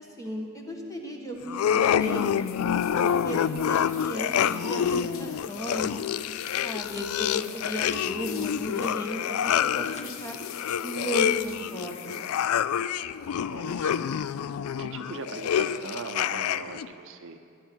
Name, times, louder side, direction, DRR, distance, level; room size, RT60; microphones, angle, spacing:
voice 1, 0.0-2.4 2.9-6.0 6.6-10.4 10.8-12.3, equal, 15° left, 1 dB, 1.5 m, -35 dB
sound 1, 1.5-16.9, left 8 dB, 90° left, 0.3 m, -27 dB
sound 2, 2.0-12.5, left 9 dB, 65° left, 0.7 m, -47 dB
sound 3, 5.9-6.1 6.8-7.1 7.6-8.1 8.4-9.0 9.6-10.1, left 4 dB, 30° left, 0.9 m, -49 dB
voice 2, 13.5-14.2 14.5-17.4, right 4 dB, 60° right, 7 dB, 0.7 m, -40 dB
19.5 x 10.0 x 4.5 m, 2.6 s
head